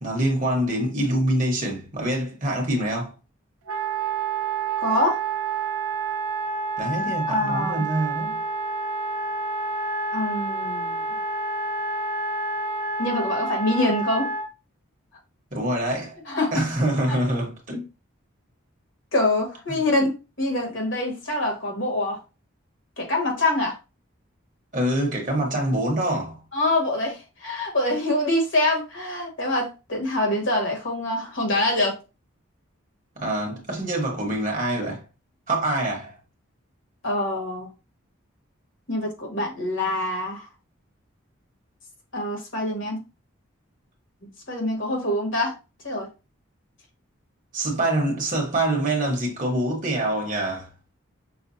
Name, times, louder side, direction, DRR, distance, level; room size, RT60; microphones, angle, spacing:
voice 1, 0.0-3.1 6.8-8.4 15.5-16.2 16.5-17.9 19.7-19.8 24.7-26.4 33.2-35.0 35.5-36.2 47.5-50.7, right 1 dB, 35° right, 1.1 m, -25 dB
Wind instrument woodwind instrument, 3.7-14.5, right 3 dB, 80° right, 0.5 m, -28 dB
voice 2, 4.8-5.2 7.2-7.8 10.1-11.0 13.0-14.3 16.3-16.6 17.1-17.2 19.1-22.2 23.0-23.8 26.5-32.0 37.0-37.7 38.9-40.5 42.1-43.0 44.2-45.5 45.8-46.1, left 1 dB, 60° left, 1.5 m, -25 dB
5.9 x 2.3 x 2.7 m
head